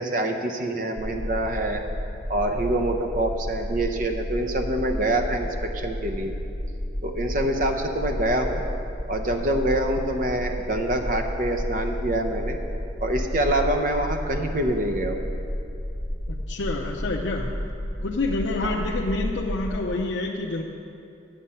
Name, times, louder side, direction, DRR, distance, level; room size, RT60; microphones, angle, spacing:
voice 1, 0.0-1.8 2.3-6.3 7.0-8.6 9.1-12.6 13.0-15.2 18.6-18.8, right 1 dB, 45° right, 5 dB, 0.7 m, -26 dB
sound 1, 1.0-20.0, equal, 15° left, 0.9 m, -32 dB
voice 2, 16.3-17.5 18.0-20.6, left 2 dB, 85° left, -2 dB, 0.7 m, -28 dB
10.5 x 7.5 x 5.6 m, 2.6 s
head